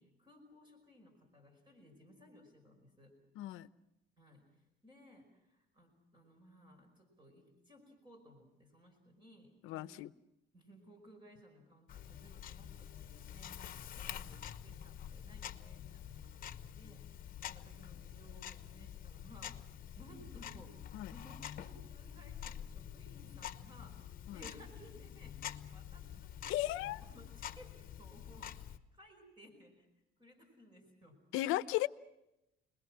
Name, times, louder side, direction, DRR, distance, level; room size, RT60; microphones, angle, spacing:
voice 1, 0.0-3.1 4.2-10.0 10.5-24.0 24.3-29.9 30.2-31.2, equal, 25° right, 3 dB, 5.3 m, -60 dB
voice 2, 3.4-3.7 9.6-10.1 20.9-21.1 24.3-24.4 26.5-27.0 31.3-31.9, left 16 dB, 85° left, 14 dB, 0.8 m, -35 dB
Tick-tock, 11.9-28.8, left 10 dB, 45° left, 1.1 m, -47 dB
29.5 x 21.0 x 6.2 m, 0.88 s
cardioid pair, 135°, 21 cm